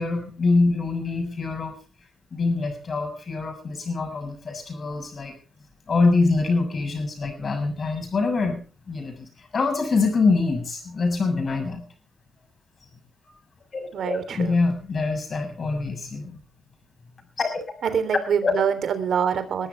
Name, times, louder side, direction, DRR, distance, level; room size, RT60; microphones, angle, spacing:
voice 1, 0.0-1.8 2.3-5.3 5.9-8.6 8.9-11.8 13.7-16.4 17.4-17.6 18.4-18.5, left 3 dB, 40° left, 7 dB, 7.0 m, -24 dB
voice 2, 13.9-14.5 17.8-19.7, right 7 dB, 65° right, 11 dB, 3.4 m, -25 dB
21.5 x 13.5 x 3.4 m, 0.36 s
cardioid pair, 130°, 0 cm